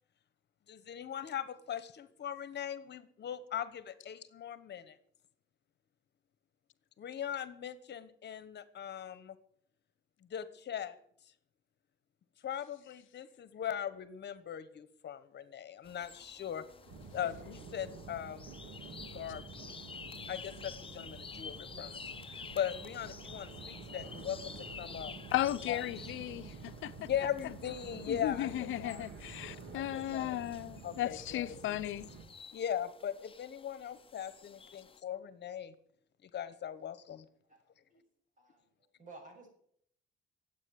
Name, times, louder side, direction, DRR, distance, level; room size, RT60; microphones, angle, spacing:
voice 1, 0.7-5.0 7.0-9.4 10.3-11.0 12.4-16.7 17.1-18.6 19.1-19.4 20.3-22.0 22.3-25.1 25.7-25.8 27.0-29.0 29.7-30.6 30.8-31.6 32.5-35.7 36.2-37.3, left 9 dB, 60° left, 1.2 m, -40 dB
sound 1, 15.8-35.0, left 5 dB, 25° left, 0.9 m, -51 dB
sound 2, 16.8-32.2, right 4 dB, 65° right, 3.2 m, -49 dB
voice 2, 25.3-27.1 28.1-32.1, left 13 dB, 80° left, 0.7 m, -36 dB
voice 3, 38.4-39.5, right 3 dB, 40° right, 6.9 m, -54 dB
13.0 x 8.4 x 9.9 m
cardioid pair, 90°, 20 cm